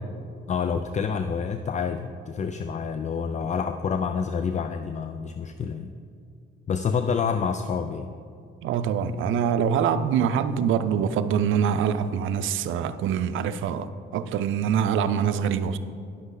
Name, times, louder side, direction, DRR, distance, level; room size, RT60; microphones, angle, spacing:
voice 1, 0.5-5.9 6.7-8.1, left 6 dB, 35° left, 0.4 m, -28 dB
voice 2, 8.6-15.8, right 7 dB, 80° right, 0.5 m, -24 dB
10.5 x 8.0 x 4.0 m
cardioid pair, 90°, 20 cm